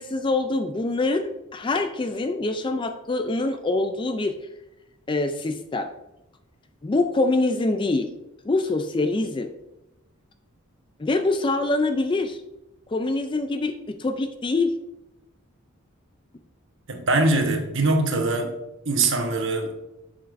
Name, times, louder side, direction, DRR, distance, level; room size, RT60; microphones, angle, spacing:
voice 1, 0.0-4.4 5.1-5.9 6.8-8.1 8.4-9.5 11.0-12.4 12.9-14.7, left 2 dB, 20° left, 8 dB, 0.4 m, -24 dB
voice 2, 16.9-18.5 18.8-19.7, right 2 dB, 60° right, 4 dB, 1.1 m, -22 dB
7.6 x 7.0 x 2.6 m, 0.92 s
head